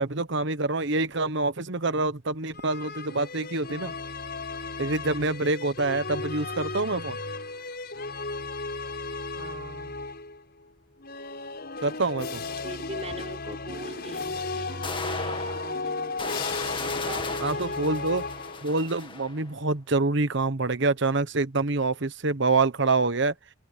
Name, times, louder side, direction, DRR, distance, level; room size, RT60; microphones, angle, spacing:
voice 1, 0.0-3.9 4.8-7.2 11.8-12.4 17.4-18.2 18.6-23.3, right 3 dB, 65° right, 1.2 m, -26 dB
sound 1, 2.5-10.4 11.0-18.9, left 3 dB, 55° left, 7.3 m, -35 dB
voice 2, 9.2-10.0 12.0-16.1 17.0-18.3, right 2 dB, 35° right, 4.8 m, -42 dB
sound 2, 14.8-19.5, left 4 dB, 25° left, 2.0 m, -36 dB
head